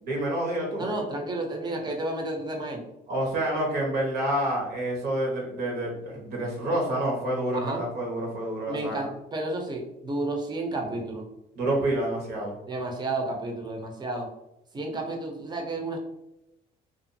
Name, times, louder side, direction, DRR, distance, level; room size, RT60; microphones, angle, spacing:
voice 1, 0.0-0.8 3.1-9.1 11.6-12.5, right 1 dB, 70° right, -1 dB, 1.1 m, -28 dB
voice 2, 0.8-2.8 7.5-7.8 8.7-11.2 12.7-14.3 14.7-16.0, right 2 dB, 25° right, 2 dB, 0.6 m, -31 dB
2.6 x 2.4 x 2.6 m, 0.88 s
cardioid pair, 110°, 17 cm